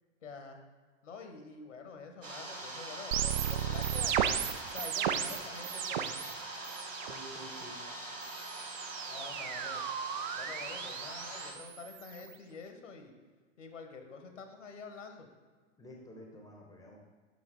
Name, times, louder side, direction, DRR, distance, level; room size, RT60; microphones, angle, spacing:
voice 1, 0.2-0.6 1.0-4.4 4.7-6.2 9.1-9.8 10.4-13.1 13.6-15.3, left 4 dB, 75° left, 5 dB, 1.2 m, -47 dB
sound 1, 2.2-11.5, right 2 dB, 80° right, 1.3 m, -43 dB
sound 2, 3.1-6.3 6.6-7.2 8.2-12.3, right 9 dB, 40° right, 0.4 m, -35 dB
voice 2, 7.0-7.8 15.8-17.0, equal, 10° left, 0 dB, 0.8 m, -50 dB
7.2 x 5.7 x 3.8 m, 1.4 s
figure-of-eight pair, 100°, 38 cm